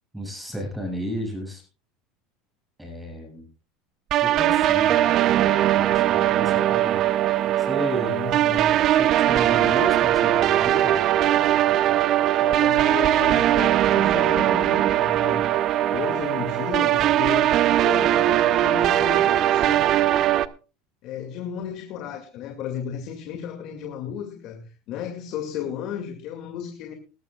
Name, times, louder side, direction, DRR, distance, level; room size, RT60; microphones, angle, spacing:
voice 1, 0.1-1.6 2.8-3.5 4.2-7.0 7.6-8.2 9.0-11.0, right 1 dB, 5° right, 6.9 m, -33 dB
sound 1, 4.1-20.5, right 12 dB, 45° right, 0.7 m, -20 dB
voice 2, 8.1-8.7 12.4-15.5 15.9-20.0 21.0-26.9, left 8 dB, 55° left, 2.3 m, -34 dB
20.0 x 12.5 x 2.4 m
supercardioid pair, 120°, 0 cm